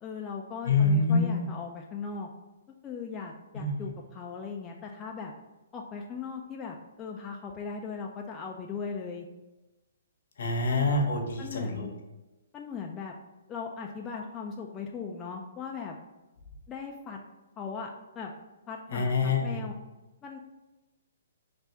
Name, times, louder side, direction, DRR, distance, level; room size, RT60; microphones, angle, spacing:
voice 1, 0.0-2.3 2.8-5.3 5.7-9.3 10.7-10.9 11.4-11.9 12.5-13.1 13.5-15.9 16.7-17.2 17.6-17.9 18.2-18.3 18.7-19.7 20.2-20.4, left 5 dB, 20° left, 0 dB, 0.3 m, -38 dB
voice 2, 0.7-1.4 3.5-3.9 10.4-11.9 18.9-19.6, left 3 dB, 65° left, 2 dB, 0.8 m, -26 dB
3.4 x 2.5 x 4.2 m, 1.1 s
hypercardioid pair, 150°, 0 cm